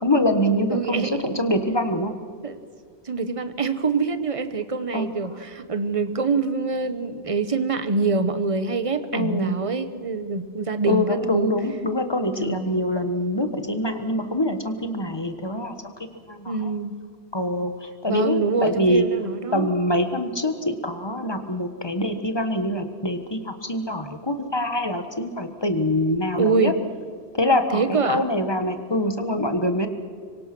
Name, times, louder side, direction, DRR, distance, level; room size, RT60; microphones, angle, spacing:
voice 1, 0.0-2.1 4.9-5.1 9.1-9.5 10.9-16.7 17.3-19.0 19.5-26.7 27.3-29.9, left 1 dB, 20° left, 7 dB, 1.5 m, -24 dB
voice 2, 0.7-1.2 2.4-2.6 3.0-11.5 12.4-12.8 16.4-16.9 18.0-19.7 26.4-26.7 27.7-28.2, right 4 dB, 30° right, 11 dB, 1.1 m, -25 dB
25.5 x 23.5 x 6.2 m, 2.1 s
omnidirectional pair, 1.2 m